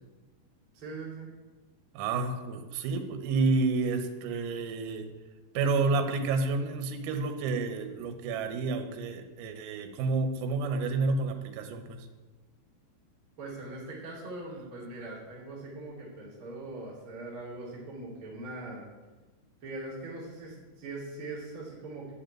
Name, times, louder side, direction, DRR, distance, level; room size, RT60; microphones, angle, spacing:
voice 1, 0.7-1.3 13.4-18.9 19.6-22.1, right 2 dB, 30° right, -6 dB, 2.9 m, -41 dB
voice 2, 2.0-5.1 5.6-12.1, right 3 dB, 85° right, 6 dB, 3.7 m, -30 dB
11.5 x 6.6 x 8.6 m, 1.2 s
omnidirectional pair, 5.9 m